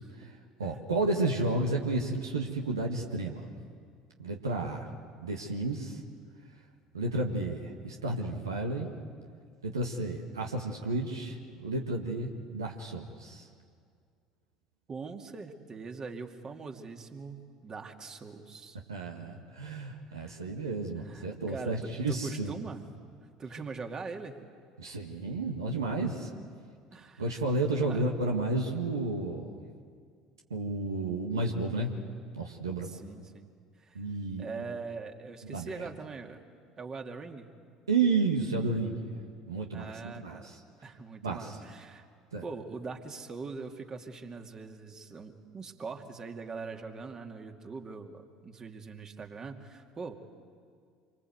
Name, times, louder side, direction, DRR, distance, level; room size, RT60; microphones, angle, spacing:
voice 1, 0.2-3.4 4.2-4.9 5.2-6.0 6.9-8.9 9.6-13.5 18.9-22.6 24.8-26.3 27.2-29.6 30.5-31.9 32.3-32.9 34.0-34.6 35.4-35.9 37.9-39.1 39.5-40.6 41.2-41.6 42.3-42.4, right 3 dB, 80° right, 1 dB, 1.8 m, -32 dB
voice 2, 14.9-18.8 20.1-20.4 21.0-22.8 23.4-24.4 26.9-27.4 27.8-28.0 32.8-33.5 33.8-34.0 34.4-36.4 36.8-37.5 39.7-40.5 40.8-42.0 42.4-50.2, right 4 dB, 30° right, 4 dB, 2.5 m, -42 dB
27.0 x 24.5 x 8.0 m, 2.2 s
figure-of-eight pair, 65°, 2 cm